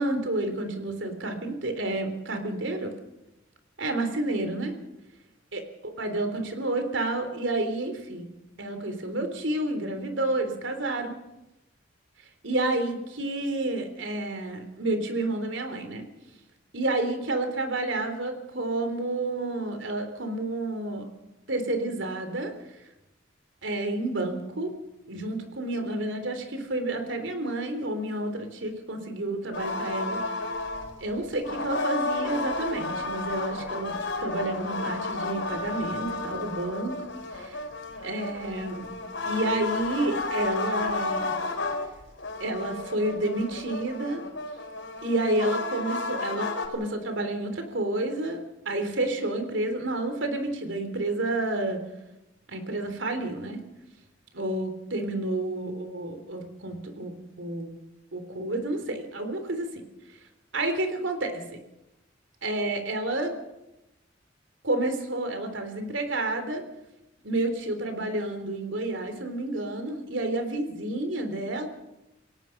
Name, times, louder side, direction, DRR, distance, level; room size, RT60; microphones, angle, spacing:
voice 1, 0.0-2.9 3.8-4.8 5.5-5.6 6.0-8.3 8.6-11.2 12.4-16.0 16.7-21.1 21.5-22.5 23.6-24.7 25.1-30.2 31.0-36.9 37.3-37.6 38.0-38.9 39.3-41.3 42.4-44.2 45.0-51.8 52.5-53.6 54.3-57.7 58.1-59.8 60.5-61.6 62.4-63.3 64.6-66.6 67.2-71.7, right 2 dB, 75° right, 7 dB, 3.6 m, -30 dB
sound 1, 29.5-46.7, left 3 dB, 75° left, 4.1 m, -32 dB
28.0 x 17.5 x 6.0 m, 0.92 s
head